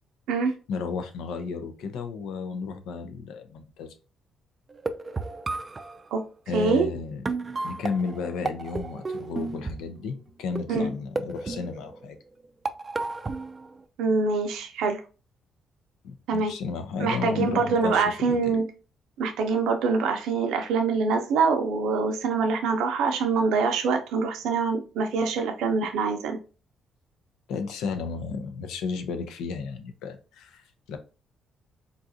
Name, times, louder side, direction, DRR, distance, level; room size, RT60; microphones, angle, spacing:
voice 1, 0.7-3.9 6.5-7.2 7.6-12.2 16.0-18.5 27.5-31.0, left 5 dB, 90° left, 8 dB, 0.6 m, -33 dB
sound 1, 4.7-6.0 7.0-7.1 7.3-10.0 10.6-10.9 11.2-12.2 12.7-13.7, right 3 dB, 30° right, 0.4 m, -33 dB
voice 2, 6.5-6.9 10.7-10.9 14.0-15.0 16.3-16.5 17.0-18.6 19.2-26.4, right 4 dB, 90° right, 4 dB, 0.5 m, -24 dB
3.8 x 2.4 x 2.6 m, 0.33 s
cardioid pair, 90°, 0 cm